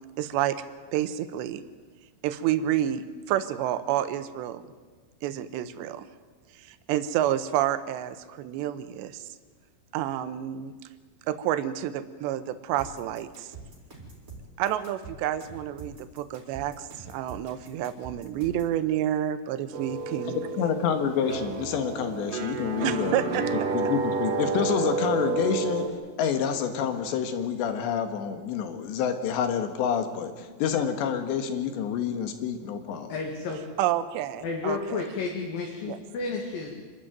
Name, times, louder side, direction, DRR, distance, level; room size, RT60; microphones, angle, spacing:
voice 1, 0.2-0.6 0.9-1.6 2.2-4.6 5.2-6.1 6.6-9.3 9.9-10.7 11.3-13.5 14.6-20.4 22.8-23.7 33.8-35.0 35.9-36.0, right 11 dB, 80° right, 13 dB, 3.1 m, -29 dB
sound 1, 12.8-18.8, right 3 dB, 20° right, 4.3 m, -45 dB
sound 2, 19.7-25.9, right 3 dB, 60° right, 2.7 m, -30 dB
voice 2, 20.3-25.8 26.2-33.1, left 7 dB, 80° left, 8 dB, 3.8 m, -28 dB
voice 3, 33.1-33.6 34.4-36.7, left 4 dB, 60° left, 0 dB, 3.5 m, -31 dB
26.0 x 13.0 x 9.3 m, 1.4 s
omnidirectional pair, 5.1 m